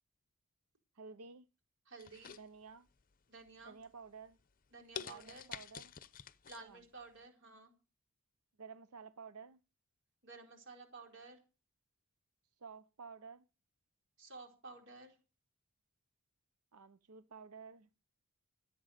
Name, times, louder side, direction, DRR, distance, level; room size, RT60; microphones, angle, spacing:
voice 1, 0.9-1.5 2.4-2.9 3.6-4.4 5.0-5.9 6.6-6.8 8.6-9.6 12.6-13.4 16.7-17.9, right 5 dB, 90° right, 0.7 m, -52 dB
voice 2, 1.9-2.3 3.3-3.8 4.7-5.5 6.5-7.7 10.2-11.4 14.2-15.2, right 3 dB, 55° right, 4.4 m, -53 dB
sound 1, 2.0-3.0 3.5-3.8 4.3-4.4 4.9-6.6 7.0-7.1, left 8 dB, 40° left, 0.7 m, -48 dB
14.5 x 8.7 x 6.5 m
head